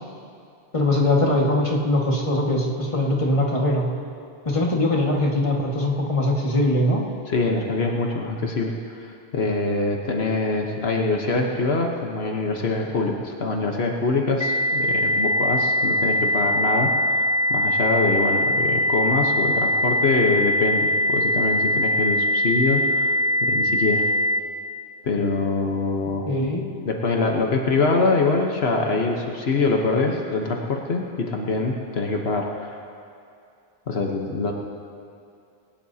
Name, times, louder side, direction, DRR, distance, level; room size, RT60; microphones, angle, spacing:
voice 1, 0.7-3.9 4.5-7.0 26.3-26.6, left 1 dB, 30° left, -3 dB, 1.9 m, -21 dB
voice 2, 7.3-24.0 25.0-26.3 26.8-32.8 33.9-34.5, left 3 dB, 75° left, 1 dB, 1.4 m, -24 dB
sound 1, 14.4-24.4, left 1 dB, 5° right, 0.4 m, -22 dB
21.5 x 19.0 x 2.8 m, 2.5 s
omnidirectional pair, 1.1 m